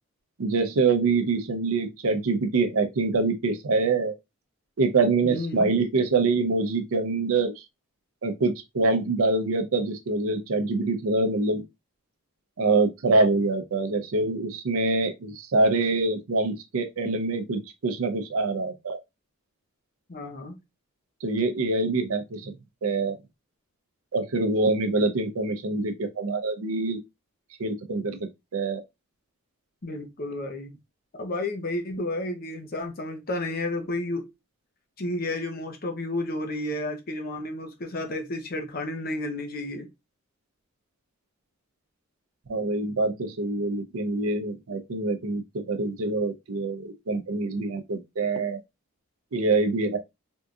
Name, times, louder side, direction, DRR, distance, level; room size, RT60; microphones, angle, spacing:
voice 1, 0.4-4.1 4.8-7.6 8.2-11.6 12.6-19.0 21.2-22.5 22.8-23.2 24.1-27.0 27.6-28.2 28.5-28.8 42.5-48.6 49.3-50.0, right 3 dB, 75° right, 0.5 m, -25 dB
voice 2, 5.2-5.8 20.1-20.6 25.0-25.1 29.8-30.8 31.2-34.3 35.0-39.9, left 2 dB, 40° left, 0.6 m, -32 dB
3.6 x 2.7 x 2.3 m
head